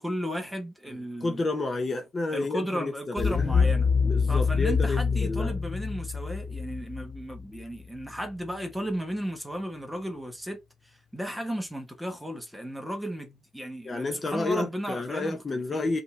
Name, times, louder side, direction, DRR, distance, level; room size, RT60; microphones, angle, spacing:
voice 1, 0.0-1.4 2.3-3.9 4.3-10.6 10.8-15.9, equal, ahead, 1.2 m, -35 dB
voice 2, 0.9-3.7 4.0-5.6 13.8-16.0, left 3 dB, 30° left, 0.8 m, -31 dB
sound 1, 3.2-8.0, left 5 dB, 45° left, 0.4 m, -26 dB
5.2 x 2.8 x 3.2 m
cardioid pair, 125°, 0 cm